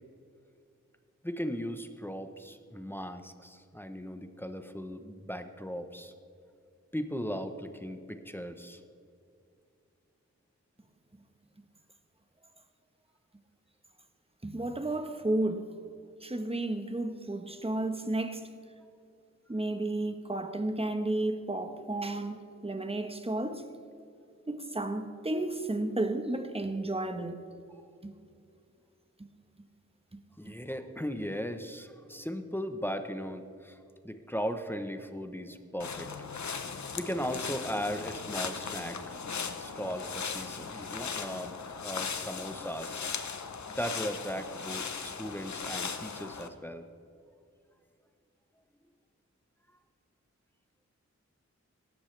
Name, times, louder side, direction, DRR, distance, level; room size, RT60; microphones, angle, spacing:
voice 1, 1.2-6.1 6.9-8.8 30.4-33.8 34.0-36.1 36.9-39.1 39.6-41.5 41.8-43.1 43.7-46.9, equal, 5° left, 0.9 m, -37 dB
voice 2, 14.4-15.7 16.2-18.4 19.5-23.7 24.5-27.4 28.0-28.1, right 2 dB, 20° right, 1.1 m, -32 dB
sound 1, 35.8-46.5, left 5 dB, 75° left, 0.9 m, -38 dB
17.0 x 13.5 x 3.3 m
wide cardioid pair, 80°, 29 cm